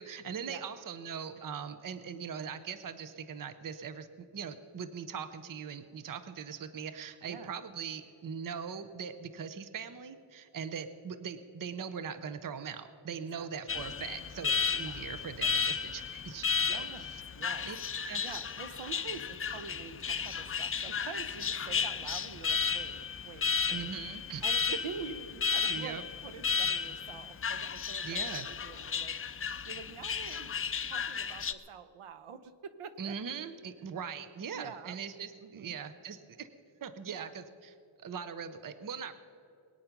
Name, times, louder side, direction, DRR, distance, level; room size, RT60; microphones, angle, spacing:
voice 1, 0.0-4.1 4.3-17.2 17.7-17.8 18.0-18.2 23.7-24.5 25.7-26.0 28.0-28.5 33.0-36.5 36.8-37.7 38.0-39.1, right 7 dB, 40° right, 11 dB, 0.7 m, -41 dB
voice 2, 13.2-13.7 14.9-15.2 16.6-17.1 17.4-24.0 24.4-33.2 34.5-35.0 35.4-35.8 37.1-37.3, right 6 dB, 80° right, 12 dB, 0.9 m, -47 dB
Alarm, 13.7-31.5, left 6 dB, 30° left, 0.3 m, -34 dB
21.5 x 9.4 x 5.9 m, 2.5 s
wide cardioid pair, 170°, 50 cm